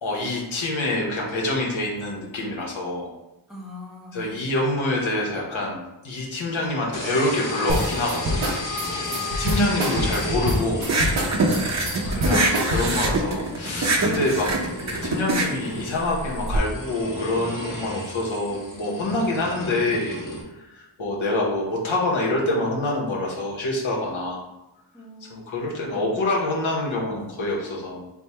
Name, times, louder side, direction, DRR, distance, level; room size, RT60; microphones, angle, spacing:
voice 1, 0.0-3.1 4.1-8.3 9.3-10.9 12.1-14.5 15.0-20.2 20.5-24.4 25.3-28.0, left 2 dB, 75° left, -3 dB, 1.0 m, -26 dB
voice 2, 3.5-4.4 8.8-9.2 24.9-25.8, left 3 dB, ahead, -4 dB, 1.0 m, -43 dB
sound 1, 6.9-20.4, left 1 dB, 45° left, 1.1 m, -34 dB
sound 2, 7.7-13.2, equal, 90° right, 0.8 m, -25 dB
sound 3, 10.8-16.6, right 2 dB, 35° right, 0.5 m, -24 dB
3.4 x 2.1 x 4.3 m, 0.97 s
wide cardioid pair, 65°, 47 cm